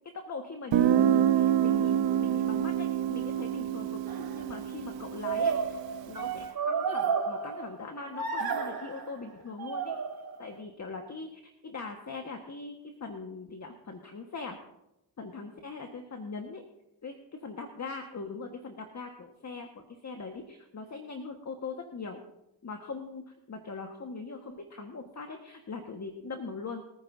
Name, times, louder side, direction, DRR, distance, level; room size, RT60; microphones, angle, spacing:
voice 1, 0.1-10.0 10.4-11.3 11.6-14.6 15.2-16.6 17.0-22.2 22.6-26.8, left 4 dB, 35° left, 4 dB, 1.5 m, -41 dB
Guitar, 0.7-6.3, right 10 dB, 65° right, 1.1 m, -27 dB
sound 1, 4.1-4.4 5.2-7.9 8.1-9.1 9.6-10.5, right 6 dB, 45° right, 2.9 m, -32 dB
23.5 x 9.6 x 2.7 m, 0.88 s
supercardioid pair, 65°, 48 cm